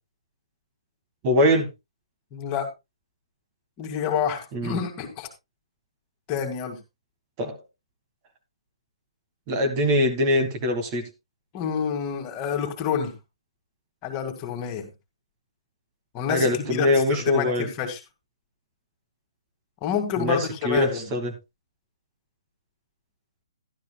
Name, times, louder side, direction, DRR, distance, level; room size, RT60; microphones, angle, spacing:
voice 1, 1.2-1.7 4.5-4.8 7.4-7.6 9.5-11.0 16.3-17.7 20.2-20.4 20.6-21.3, left 1 dB, 30° right, 5 dB, 1.6 m, -22 dB
voice 2, 2.3-2.7 3.8-5.3 6.3-6.8 11.5-13.1 14.0-14.9 16.1-18.0 19.8-21.1, left 8 dB, 25° left, 4 dB, 2.3 m, -28 dB
13.0 x 12.0 x 2.3 m, 0.22 s
figure-of-eight pair, 130°, 3 cm